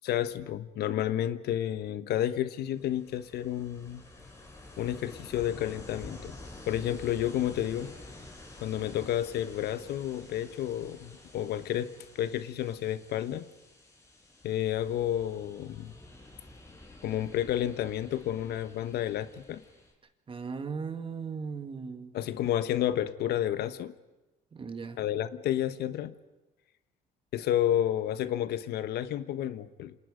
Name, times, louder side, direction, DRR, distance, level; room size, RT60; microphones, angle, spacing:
voice 1, 0.0-4.0 4.8-6.3 6.7-7.9 8.6-13.4 14.4-15.9 17.0-19.6 22.1-23.9 25.0-26.1 27.3-29.9, left 11 dB, 75° left, 13 dB, 1.2 m, -31 dB
Ocean, 2.5-19.9, left 2 dB, 20° left, 5.4 m, -50 dB
voice 2, 20.3-22.1 24.5-25.0, right 5 dB, 30° right, 9 dB, 2.1 m, -37 dB
28.5 x 26.5 x 5.2 m, 1.1 s
cardioid pair, 110°, 17 cm